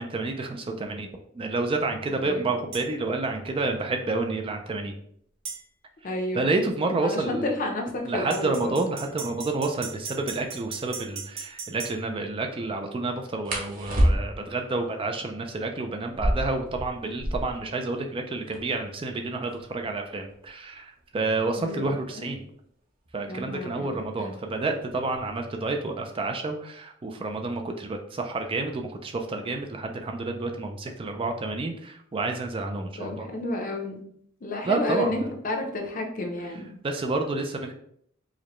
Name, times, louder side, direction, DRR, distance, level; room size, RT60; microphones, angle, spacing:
voice 1, 0.0-4.9 6.3-7.5 8.0-22.4 23.1-33.3 34.6-35.3 36.8-37.7, right 3 dB, 25° right, 4 dB, 0.3 m, -29 dB
sound 1, 2.7-2.9 5.5-5.6 8.3-11.9, right 5 dB, 85° right, 1.2 m, -37 dB
voice 2, 6.0-6.6 7.0-8.7 21.6-22.3 23.3-24.3 33.0-34.0 34.4-36.7, left 1 dB, 40° left, 2 dB, 0.6 m, -31 dB
sound 2, 10.8-11.0 13.4-14.6 16.0-17.7 18.0-18.1 18.3-18.9 19.5-22.0 23.1-23.4 23.8-24.2 24.6-25.3, equal, 45° right, 0.8 m, -28 dB
4.8 x 2.2 x 3.0 m, 0.66 s
head